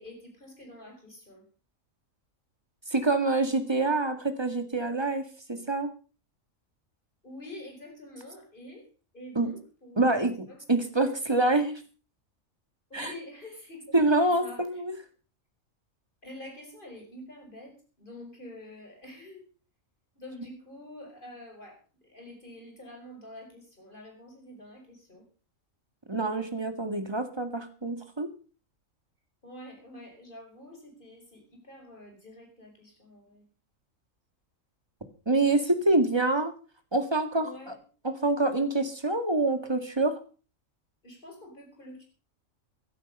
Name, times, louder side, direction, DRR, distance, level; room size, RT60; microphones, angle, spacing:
voice 1, 0.0-1.4 7.2-8.8 9.1-9.6 9.9-10.0 12.9-14.6 16.2-19.4 20.2-21.8 22.1-25.2 29.4-33.4 37.4-37.7 41.0-42.0, left 1 dB, 40° left, 2 dB, 6.0 m, -46 dB
voice 2, 2.9-5.9 9.3-9.5 10.0-11.8 12.9-13.1 13.9-15.0 26.1-28.3 35.3-36.5 36.9-37.8 38.0-40.2, right 2 dB, 20° right, 8 dB, 2.0 m, -26 dB
16.5 x 11.5 x 5.5 m, 0.37 s
omnidirectional pair, 1.4 m